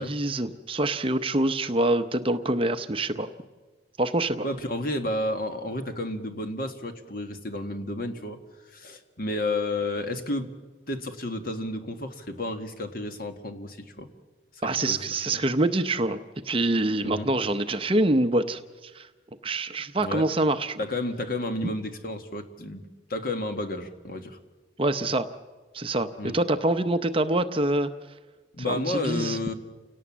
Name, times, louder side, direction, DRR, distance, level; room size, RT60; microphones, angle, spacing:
voice 1, 0.0-3.3 4.0-4.5 14.6-16.2 16.4-19.1 19.4-20.8 24.8-25.3 25.7-26.1 26.3-27.9 28.7-29.4, right 2 dB, 30° right, 10 dB, 0.7 m, -25 dB
voice 2, 4.4-8.4 8.7-10.5 10.9-14.1 14.9-15.4 17.0-17.3 20.0-20.2 20.8-22.8 23.1-24.4 26.2-26.4 28.5-29.5, left 2 dB, 50° left, 7 dB, 1.7 m, -31 dB
29.0 x 18.0 x 7.4 m, 1.3 s
head